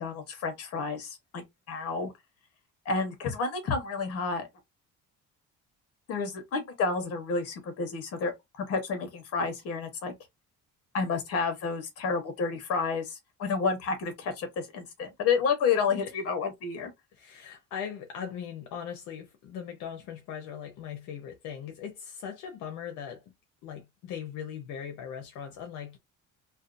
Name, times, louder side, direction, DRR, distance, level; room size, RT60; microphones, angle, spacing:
voice 1, 0.0-2.1 2.8-4.5 6.1-8.3 8.6-10.1 10.9-16.9, left 5 dB, 50° left, 1.0 m, -30 dB
voice 2, 17.1-23.2 23.6-26.0, left 8 dB, 75° left, 0.7 m, -39 dB
2.6 x 2.2 x 2.5 m
cardioid pair, 175°, 31 cm